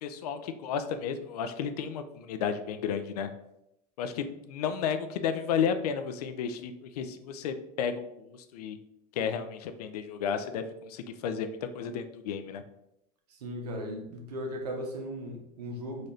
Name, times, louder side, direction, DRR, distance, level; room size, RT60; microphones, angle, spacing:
voice 1, 0.0-3.3 4.0-8.8 9.2-12.6, left 7 dB, 75° left, 9 dB, 0.5 m, -33 dB
voice 2, 13.3-16.1, equal, 85° right, 2 dB, 0.9 m, -37 dB
3.9 x 2.6 x 3.3 m, 0.83 s
hypercardioid pair, 100°, 20 cm